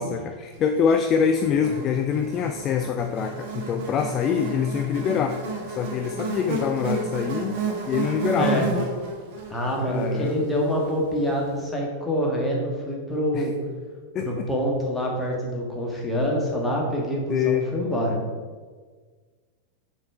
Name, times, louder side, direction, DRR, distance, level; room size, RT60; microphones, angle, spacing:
voice 1, 0.0-5.4 5.7-7.6 7.9-8.7 9.8-10.4 13.3-13.5 14.1-14.3 17.3-17.7, left 7 dB, 30° left, 6 dB, 0.4 m, -25 dB
Buzz, 0.9-11.3, right 3 dB, 45° right, 1.3 m, -32 dB
voice 2, 8.3-8.7 9.5-13.6 14.2-18.2, equal, 5° left, -2 dB, 1.7 m, -26 dB
6.4 x 4.4 x 4.8 m, 1.5 s
figure-of-eight pair, 90°, 0 cm